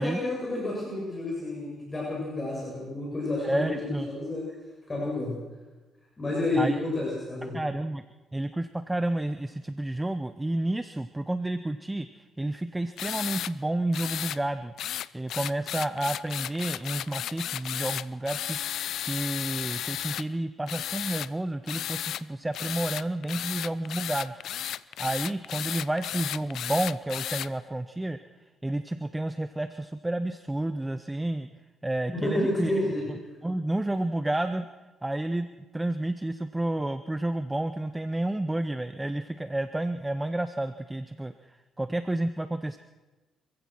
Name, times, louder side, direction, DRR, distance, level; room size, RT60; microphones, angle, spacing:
voice 1, 0.0-4.5 4.9-5.4 6.2-7.6 32.2-33.0, left 2 dB, 25° left, -4 dB, 7.9 m, -30 dB
voice 2, 3.4-4.1 6.6-6.8 7.5-8.0 8.3-14.7 15.1-18.6 19.1-24.4 25.0-28.2 28.6-31.5 31.8-32.7 33.4-34.7 35.0-35.5 35.7-42.8, right 1 dB, 10° right, 11 dB, 0.8 m, -30 dB
sound 1, 13.0-13.5 13.9-14.4 14.8-20.2 20.7-21.3 21.7-22.2 22.5-27.5, left 11 dB, 75° left, 0.6 m, -34 dB
26.5 x 15.5 x 6.3 m, 1.2 s
cardioid pair, 90°, 0 cm